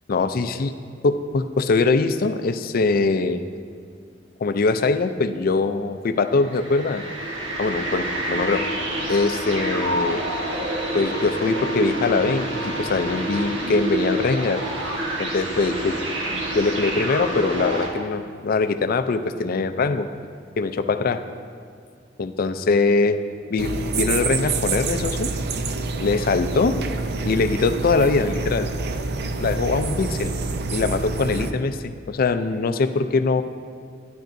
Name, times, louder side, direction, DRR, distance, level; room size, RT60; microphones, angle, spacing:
voice 1, 0.1-0.7 1.0-3.4 4.4-7.0 7.6-8.6 9.1-10.2 10.9-14.6 15.2-16.0 16.3-20.1 20.6-21.2 22.2-23.2 23.5-25.3 26.0-26.8 27.2-28.7 29.4-30.3 30.7-33.4, left 4 dB, 50° left, 9 dB, 0.4 m, -22 dB
sound 1, 6.3-17.9, right 1 dB, 80° right, 1.3 m, -27 dB
sound 2, 23.6-31.5, right 3 dB, 60° right, 0.5 m, -27 dB
12.0 x 10.0 x 2.6 m, 2.2 s
head